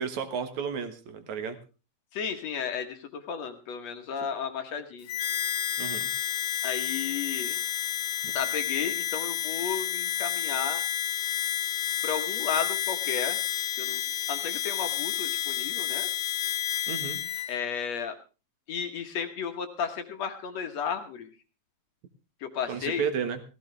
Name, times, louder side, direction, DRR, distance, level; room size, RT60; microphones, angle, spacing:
voice 1, 0.0-1.6 5.8-6.1 16.9-17.2 22.7-23.4, right 6 dB, 60° right, 8 dB, 2.6 m, -32 dB
voice 2, 2.1-5.1 6.6-7.6 8.3-10.8 12.0-13.4 13.8-14.0 14.3-16.1 17.5-18.2 18.7-21.3 22.4-23.0, left 7 dB, 60° left, 6 dB, 2.1 m, -33 dB
Harmonica, 5.1-17.5, left 11 dB, 80° left, 2.8 m, -30 dB
17.0 x 15.5 x 3.3 m, 0.31 s
omnidirectional pair, 4.1 m